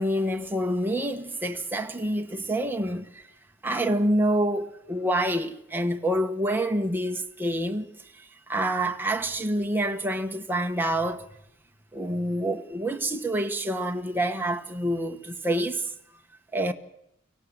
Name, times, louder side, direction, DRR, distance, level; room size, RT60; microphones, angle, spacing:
voice 1, 0.0-3.2 3.6-11.2 11.9-15.9 16.5-16.7, right 1 dB, 10° right, 1.2 m, -27 dB
24.0 x 17.5 x 7.9 m
head